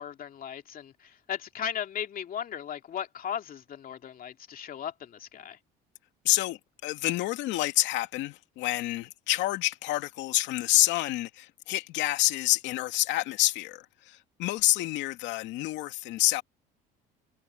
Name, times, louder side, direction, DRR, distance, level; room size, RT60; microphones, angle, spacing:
voice 1, 0.0-5.6, left 9 dB, 50° left, 2.6 m, -37 dB
voice 2, 6.2-16.4, left 16 dB, 75° left, 2.5 m, -28 dB
supercardioid pair, 100°, 19 cm